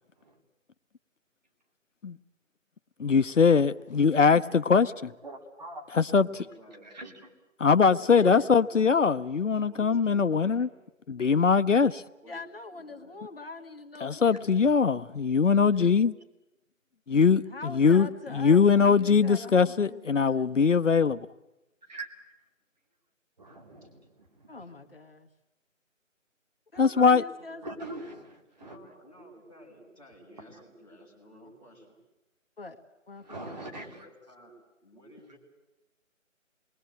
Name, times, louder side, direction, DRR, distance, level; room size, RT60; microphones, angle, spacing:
voice 1, 3.0-5.1 5.9-6.3 7.6-10.7 11.1-12.0 14.0-16.1 17.1-21.2 26.8-27.2, left 5 dB, 65° left, 12 dB, 0.8 m, -22 dB
voice 2, 5.2-6.2 6.8-7.3 8.8-8.9 14.3-14.4 21.9-22.1 23.4-24.5 26.7-26.8 27.6-28.8 30.5-30.6 33.2-34.1, right 2 dB, 30° right, 2 dB, 2.9 m, -43 dB
voice 3, 6.0-6.9 7.9-9.1 9.6-10.7 12.2-12.4 12.7-13.1 23.8-23.9 27.2-27.8 28.6-32.0 33.5-34.5 34.8-35.4, equal, 5° right, -6 dB, 4.4 m, -53 dB
voice 4, 8.1-8.5 12.3-14.5 17.5-20.8 24.5-25.3 26.7-27.8 32.6-33.6, left 3 dB, 45° left, 5 dB, 1.5 m, -43 dB
28.0 x 21.5 x 8.0 m, 0.98 s
figure-of-eight pair, 170°, 40 cm